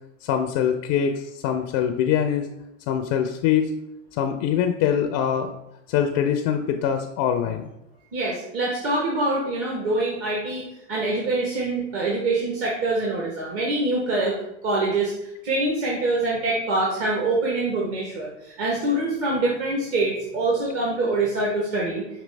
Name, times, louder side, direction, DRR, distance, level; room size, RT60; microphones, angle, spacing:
voice 1, 0.2-2.5 2.9-3.7 4.2-5.5 5.9-7.7, left 9 dB, 50° left, 6 dB, 0.5 m, -23 dB
voice 2, 8.1-10.6 10.9-14.4 14.6-15.1 15.4-22.0, right 2 dB, 40° right, -4 dB, 1.1 m, -24 dB
5.1 x 3.0 x 3.2 m, 0.83 s
hypercardioid pair, 105°, 37 cm